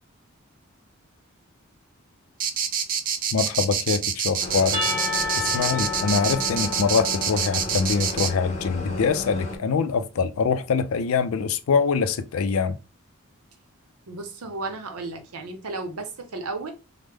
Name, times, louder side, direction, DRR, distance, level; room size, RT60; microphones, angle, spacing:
sound 1, 2.4-8.3, right 8 dB, 40° right, 0.3 m, -26 dB
voice 1, 3.3-4.8 5.4-12.8, left 5 dB, 70° left, 0.4 m, -24 dB
sound 2, 4.4-9.6, left 2 dB, 30° left, 0.7 m, -34 dB
Percussion / Church bell, 4.7-8.4, left 3 dB, 20° right, 0.9 m, -32 dB
voice 2, 14.1-16.7, right 3 dB, 85° right, 0.7 m, -34 dB
3.2 x 2.1 x 3.3 m
head